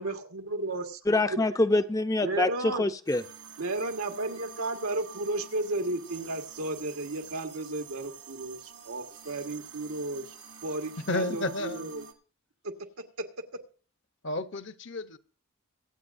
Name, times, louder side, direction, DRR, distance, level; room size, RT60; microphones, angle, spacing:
voice 1, 0.0-1.5 2.2-2.9 3.6-10.3 10.6-12.1 12.6-12.7 13.2-13.3, right 2 dB, 90° right, 1.5 m, -33 dB
voice 2, 1.1-3.2, left 2 dB, 15° left, 0.5 m, -25 dB
sound 1, 3.0-12.1, right 8 dB, 75° right, 1.8 m, -48 dB
voice 3, 11.1-11.9 14.2-15.2, left 2 dB, 55° left, 0.8 m, -32 dB
24.5 x 8.4 x 2.6 m
head